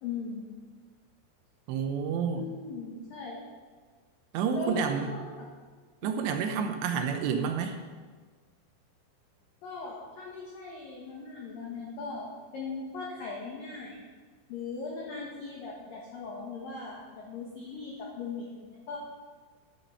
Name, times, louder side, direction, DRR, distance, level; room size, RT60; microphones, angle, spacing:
voice 1, 0.0-0.4 2.3-3.4 4.5-5.3 6.0-6.1 9.6-14.0 14.5-19.0, left 4 dB, 65° left, -3 dB, 2.4 m, -39 dB
voice 2, 1.7-2.5 4.3-5.1 6.0-7.8, right 6 dB, 80° right, 5 dB, 2.6 m, -29 dB
11.5 x 9.0 x 5.6 m, 1.5 s
omnidirectional pair, 5.8 m